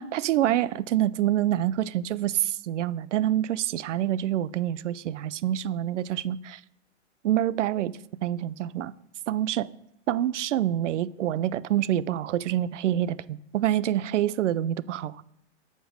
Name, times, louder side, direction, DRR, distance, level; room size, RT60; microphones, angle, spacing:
voice 1, 0.0-6.6 7.2-7.9 8.2-8.9 9.3-9.7 10.1-13.2 13.5-15.2, right 12 dB, 85° right, 0.5 m, -26 dB
7.9 x 4.4 x 4.7 m
hypercardioid pair, 155°, 35 cm